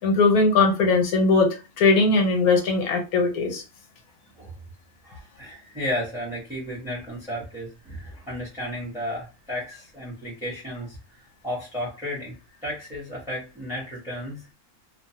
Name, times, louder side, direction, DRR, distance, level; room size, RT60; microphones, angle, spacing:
voice 1, 0.0-1.5 1.8-3.6, left 3 dB, 80° left, 3 dB, 1.3 m, -19 dB
voice 2, 5.0-12.4 12.6-14.5, equal, 5° right, -3 dB, 0.7 m, -33 dB
3.0 x 2.1 x 2.7 m, 0.29 s
omnidirectional pair, 1.6 m